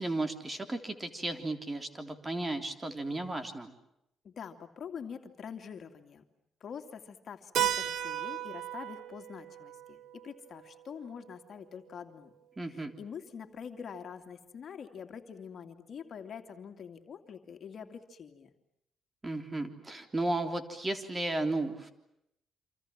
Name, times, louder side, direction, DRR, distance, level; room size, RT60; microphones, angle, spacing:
voice 1, 0.0-3.7 12.6-13.0 19.2-21.9, right 2 dB, 20° right, 7 dB, 3.5 m, -34 dB
voice 2, 4.2-6.2 6.6-12.3 12.7-18.5, left 7 dB, 55° left, 6 dB, 2.7 m, -45 dB
Keyboard (musical), 7.6-12.0, right 11 dB, 70° right, 1.7 m, -36 dB
28.0 x 27.0 x 7.5 m, 0.81 s
cardioid pair, 90°, 0 cm